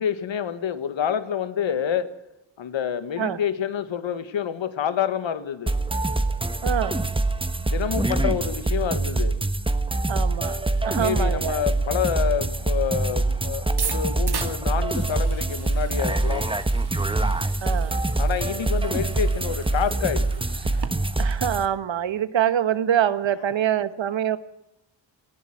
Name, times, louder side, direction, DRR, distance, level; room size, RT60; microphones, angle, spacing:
voice 1, 0.0-2.1 2.6-5.7 7.6-9.3 10.9-16.5 18.2-20.3, left 8 dB, 90° left, 11 dB, 1.9 m, -27 dB
sound 1, 5.7-21.7, right 2 dB, 10° right, 1.3 m, -25 dB
voice 2, 6.6-7.0 10.1-11.6 17.6-18.1 21.2-24.4, right 10 dB, 85° right, 13 dB, 1.4 m, -25 dB
sound 2, 13.8-20.9, right 6 dB, 60° right, 2.1 m, -37 dB
19.0 x 15.5 x 9.3 m, 0.87 s
wide cardioid pair, 105°, 44 cm